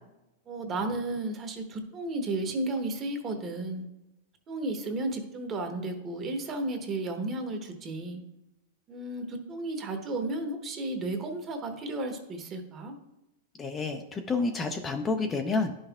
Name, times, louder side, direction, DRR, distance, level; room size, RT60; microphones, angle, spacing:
voice 1, 0.5-3.9 4.5-8.2 8.9-12.9, right 2 dB, 25° right, 5 dB, 0.9 m, -33 dB
voice 2, 13.6-15.7, left 3 dB, 20° left, 5 dB, 0.4 m, -29 dB
11.0 x 5.5 x 2.3 m, 0.94 s
supercardioid pair, 145°, 0 cm